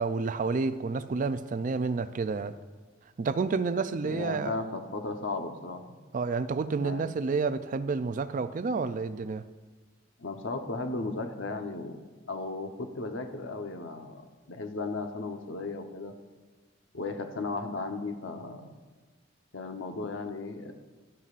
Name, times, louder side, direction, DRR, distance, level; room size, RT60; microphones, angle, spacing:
voice 1, 0.0-2.6 3.2-4.6 6.1-9.4, right 4 dB, 40° right, 0.4 m, -29 dB
voice 2, 4.0-6.0 6.8-7.1 10.2-12.0 12.3-14.2 14.5-16.1 16.9-18.7 19.5-20.7, left 3 dB, 75° left, 0.9 m, -35 dB
12.5 x 11.5 x 2.5 m
head